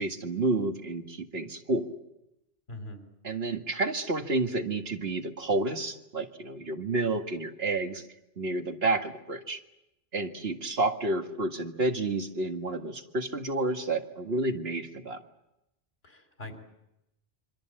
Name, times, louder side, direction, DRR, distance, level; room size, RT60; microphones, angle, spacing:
voice 1, 0.0-1.9 3.2-8.0 8.4-9.6 10.1-15.2, right 2 dB, 75° right, 5 dB, 2.1 m, -30 dB
voice 2, 2.7-3.0 16.0-16.5, left 1 dB, 75° left, 6 dB, 4.1 m, -42 dB
26.5 x 24.5 x 7.7 m, 0.90 s
omnidirectional pair, 1.0 m